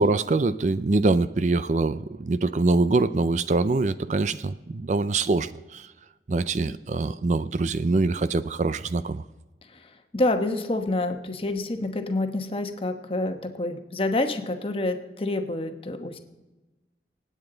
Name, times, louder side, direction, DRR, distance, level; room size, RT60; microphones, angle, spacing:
voice 1, 0.0-5.9 6.3-9.2, right 3 dB, 45° right, 14 dB, 0.4 m, -24 dB
voice 2, 9.7-16.2, left 2 dB, 30° left, 6 dB, 1.1 m, -28 dB
27.0 x 9.0 x 3.9 m, 1.1 s
head